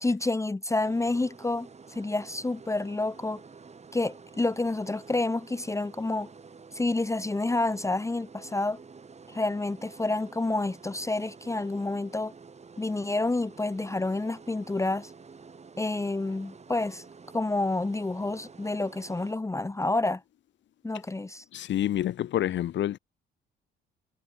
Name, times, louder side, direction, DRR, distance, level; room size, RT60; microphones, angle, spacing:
voice 1, 0.0-3.4 3.9-6.3 6.7-8.8 9.3-12.3 12.8-15.1 15.8-17.1 17.3-20.2 20.8-21.4, left 2 dB, 15° left, 1.1 m, -29 dB
sound 1, 0.8-19.3, right 5 dB, 35° right, 3.9 m, -50 dB
voice 2, 21.5-23.0, left 12 dB, 65° left, 1.0 m, -28 dB
cardioid pair, 90°, 20 cm